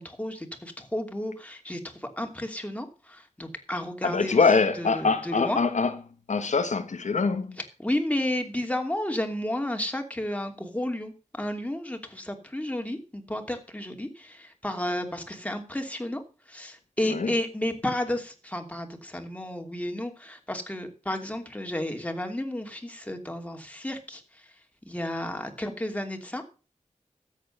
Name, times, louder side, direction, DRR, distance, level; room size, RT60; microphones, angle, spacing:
voice 1, 0.0-1.8 2.2-4.4 4.8-5.6 7.8-16.2 16.5-24.2 24.9-26.4, left 1 dB, 10° left, 2.8 m, -32 dB
voice 2, 4.0-5.9 6.3-7.5 17.1-17.3, left 4 dB, 75° left, 1.4 m, -24 dB
13.5 x 8.2 x 6.5 m
wide cardioid pair, 75°, 12 cm